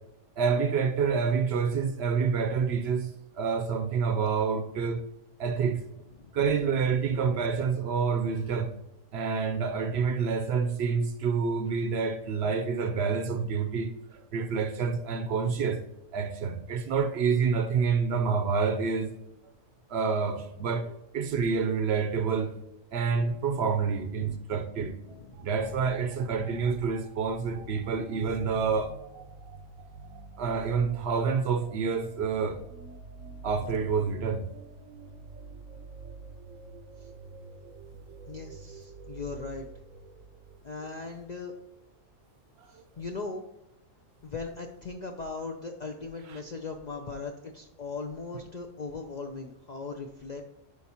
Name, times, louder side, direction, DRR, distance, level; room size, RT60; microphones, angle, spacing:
voice 1, 0.4-5.0 5.4-5.8 6.3-8.7 9.1-15.8 16.1-19.1 19.9-22.6 22.9-25.0 25.4-29.0 30.4-32.6 33.4-34.5 42.7-42.8, right 5 dB, 65° right, 0.8 m, -28 dB
voice 2, 25.0-25.5 37.0-37.1 38.3-39.7 40.6-41.5 42.7-43.4 44.2-50.4, left 4 dB, 55° left, 0.5 m, -39 dB
sound 1, 25.3-41.7, right 3 dB, 85° right, 1.0 m, -47 dB
10.5 x 4.6 x 2.8 m
omnidirectional pair, 1.3 m